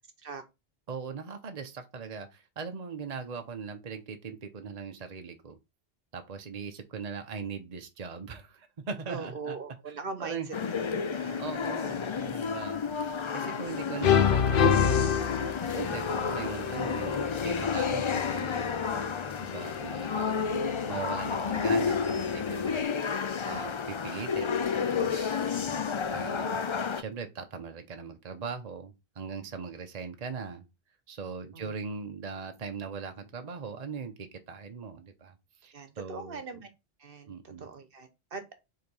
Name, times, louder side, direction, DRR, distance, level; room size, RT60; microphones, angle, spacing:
voice 1, 0.9-5.6 6.1-9.6 9.9-10.5 11.4-12.8 13.3-15.2 15.7-18.8 19.4-23.0 23.4-25.4 26.1-26.6 27.0-30.6 31.1-35.3 35.6-36.6 37.2-37.7, right 5 dB, 40° right, 0.9 m, -40 dB
voice 2, 9.1-10.5 11.1-11.5 31.5-31.7 35.7-36.7 37.0-38.5, right 4 dB, 60° right, 1.2 m, -41 dB
sound 1, 10.5-27.0, left 6 dB, 40° left, 0.4 m, -31 dB
sound 2, 13.4-13.8 14.0-22.8, left 7 dB, 60° left, 0.9 m, -30 dB
5.0 x 3.8 x 5.4 m
omnidirectional pair, 1.1 m